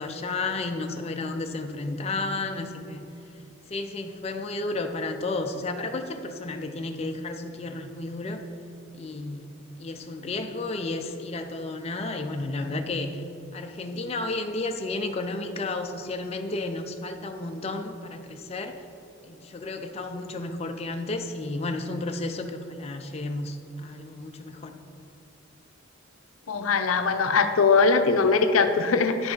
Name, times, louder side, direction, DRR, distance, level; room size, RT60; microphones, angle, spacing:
voice 1, 0.0-3.1 3.7-8.4 8.9-9.5 9.8-13.2 13.5-18.8 19.3-24.8, left 2 dB, 30° left, 5 dB, 0.4 m, -32 dB
voice 2, 26.5-29.3, left 4 dB, 85° left, 8 dB, 0.5 m, -21 dB
10.5 x 5.6 x 3.9 m, 2.5 s
head